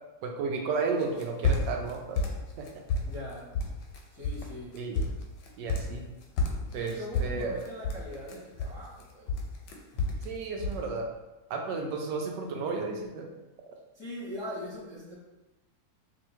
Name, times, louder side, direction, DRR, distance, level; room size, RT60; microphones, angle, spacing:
voice 1, 0.2-2.2 2.6-2.8 4.7-5.1 5.6-6.1 6.7-6.9 7.2-7.6 10.2-11.1 11.5-13.3, right 4 dB, 90° right, 2 dB, 1.2 m, -33 dB
sound 1, 1.0-1.9 2.2-3.2 3.5-4.0 4.2-4.5 4.8-6.0 6.4-9.0 9.3-10.3 10.6-10.8, left 3 dB, 85° left, 1.3 m, -30 dB
voice 2, 3.1-3.6 4.1-4.8 6.7-9.4 9.9-10.0 13.9-15.1, left 1 dB, 25° left, -9 dB, 0.6 m, -41 dB
4.5 x 2.5 x 3.0 m, 1.0 s
omnidirectional pair, 1.8 m